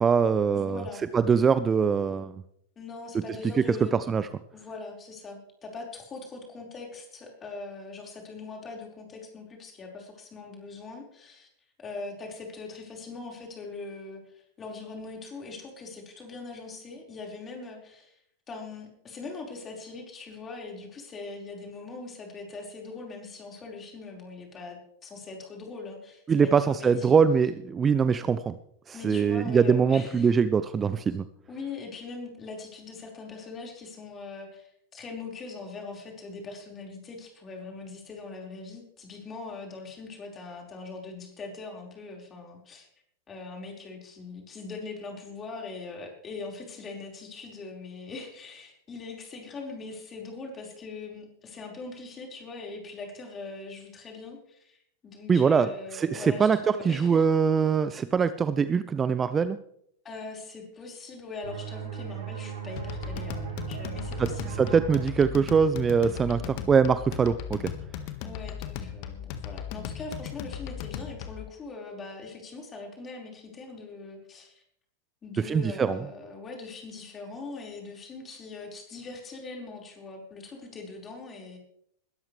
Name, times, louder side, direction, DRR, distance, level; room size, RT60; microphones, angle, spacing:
voice 1, 0.0-0.8 1.1-2.4 3.7-4.3 26.3-28.6 28.9-31.2 55.3-55.7 55.9-59.6 64.2-64.3 64.6-67.7 75.4-76.0, right 6 dB, 20° right, 14 dB, 0.5 m, -23 dB
voice 2, 0.5-1.0 2.8-4.0 4.5-11.5 11.8-18.2 18.5-27.1 28.9-30.3 31.5-42.9 43.3-57.3 60.0-64.8 66.2-66.4 68.2-74.6 75.2-81.6, left 3 dB, 20° left, 0 dB, 4.8 m, -41 dB
sound 1, 61.4-66.8, right 9 dB, 65° right, 7.8 m, -38 dB
sound 2, 62.8-71.5, left 9 dB, 45° left, 1.6 m, -37 dB
21.5 x 13.0 x 3.3 m, 0.72 s
figure-of-eight pair, 90°, 0 cm